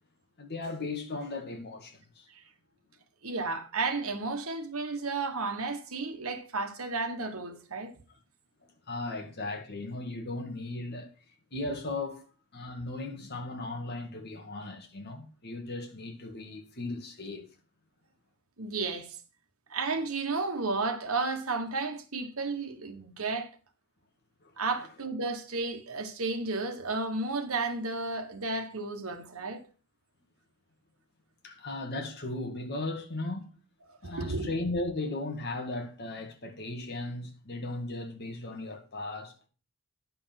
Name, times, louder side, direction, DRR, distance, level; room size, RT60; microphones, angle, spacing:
voice 1, 0.4-2.3 8.6-11.1 11.5-12.2 12.5-17.5 24.4-24.5 24.8-24.9 31.4-33.5 34.0-39.5, left 2 dB, 50° left, 1.9 m, -37 dB
voice 2, 3.2-7.9 18.6-19.2 19.7-23.5 24.6-29.6 34.0-34.5, right 3 dB, 70° right, 1.5 m, -32 dB
10.0 x 5.4 x 5.9 m
head